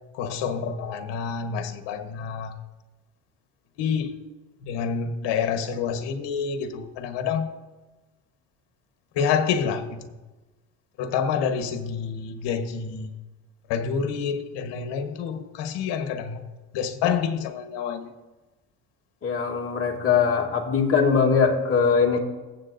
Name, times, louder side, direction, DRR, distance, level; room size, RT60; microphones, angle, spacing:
voice 1, 0.1-2.5 3.8-4.1 4.6-7.5 9.1-10.1 11.0-13.1 13.7-16.4 16.7-18.1, left 6 dB, 70° left, 8 dB, 1.3 m, -28 dB
voice 2, 19.2-22.2, left 6 dB, 30° left, -1 dB, 2.1 m, -21 dB
21.5 x 7.9 x 2.6 m, 1.2 s
cardioid pair, 110°, 44 cm